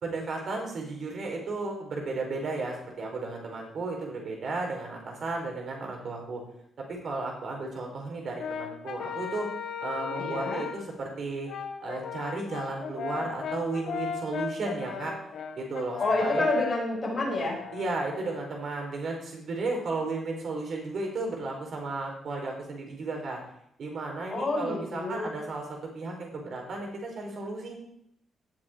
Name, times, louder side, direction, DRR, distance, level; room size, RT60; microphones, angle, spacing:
voice 1, 0.0-6.4 6.8-9.5 9.8-11.5 11.8-15.1 15.6-16.5 17.7-23.4 23.8-27.7, right 3 dB, 50° right, 1 dB, 4.5 m, -34 dB
Brass instrument, 8.4-10.9 11.5-18.4, left 6 dB, 70° left, 1.6 m, -36 dB
voice 2, 10.2-10.6 16.0-17.6 24.3-25.3, left 2 dB, 25° left, -3 dB, 6.1 m, -29 dB
18.0 x 7.5 x 4.6 m, 0.72 s
cardioid pair, 145°, 0 cm